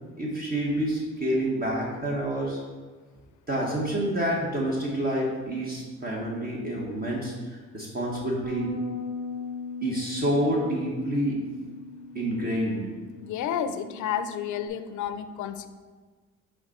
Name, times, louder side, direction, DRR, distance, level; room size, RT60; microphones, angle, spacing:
voice 1, 0.2-2.6 3.5-8.7 9.8-11.4 12.1-12.9, right 1 dB, 30° right, -3 dB, 1.4 m, -28 dB
Bass guitar, 8.4-14.7, left 2 dB, 65° right, 1.1 m, -39 dB
voice 2, 13.2-15.7, left 9 dB, 75° left, 10 dB, 0.5 m, -31 dB
7.9 x 3.7 x 4.3 m, 1.4 s
cardioid pair, 90°, 30 cm